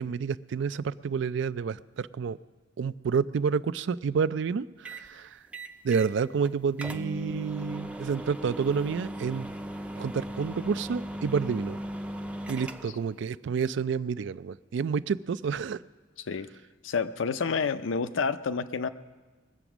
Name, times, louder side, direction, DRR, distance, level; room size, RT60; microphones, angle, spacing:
voice 1, 0.0-2.4 2.8-5.4 5.8-9.5 10.0-11.8 12.5-15.8, right 6 dB, 65° right, 15 dB, 0.4 m, -29 dB
sound 1, 4.9-5.1 5.5-6.1 6.4-6.5 6.8-13.1, right 1 dB, 5° right, 0.5 m, -37 dB
voice 2, 16.8-18.9, left 5 dB, 75° left, 11 dB, 0.5 m, -29 dB
21.0 x 7.9 x 6.0 m, 1.3 s
head